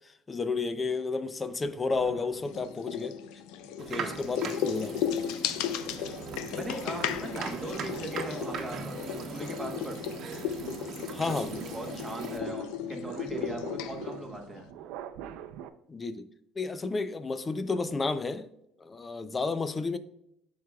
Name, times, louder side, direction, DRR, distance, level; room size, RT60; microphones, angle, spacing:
voice 1, 0.3-3.2 3.8-5.2 11.1-11.7 15.9-16.3 16.6-18.5 18.8-20.0, left 4 dB, 20° left, 0.5 m, -32 dB
sound 1, 1.6-3.1 3.6-15.7, right 9 dB, 80° right, 0.5 m, -47 dB
sound 2, 2.5-14.7, left 9 dB, 80° left, 0.5 m, -35 dB
sound 3, 3.8-12.4, right 5 dB, 45° right, 1.0 m, -40 dB
voice 2, 6.5-10.0 11.3-11.4 11.7-14.7, right 1 dB, 5° right, 1.2 m, -39 dB
12.0 x 4.7 x 2.3 m
cardioid pair, 150°, 0 cm